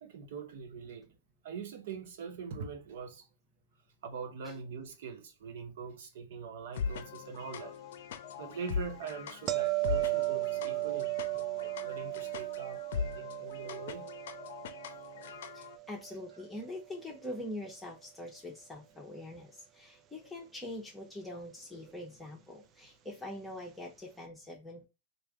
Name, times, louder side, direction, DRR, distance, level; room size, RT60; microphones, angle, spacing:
voice 1, 0.0-1.1 1.4-3.2 4.0-7.7 8.4-14.1 15.2-15.5, right 6 dB, 65° right, 1.0 m, -43 dB
sound 1, 6.7-15.8, left 6 dB, 65° left, 0.5 m, -40 dB
sound 2, 9.5-16.5 21.7-21.9, right 21 dB, 30° right, 0.4 m, -35 dB
voice 2, 15.5-24.9, left 1 dB, 10° left, 0.9 m, -44 dB
3.3 x 2.5 x 3.5 m
hypercardioid pair, 125°, 0 cm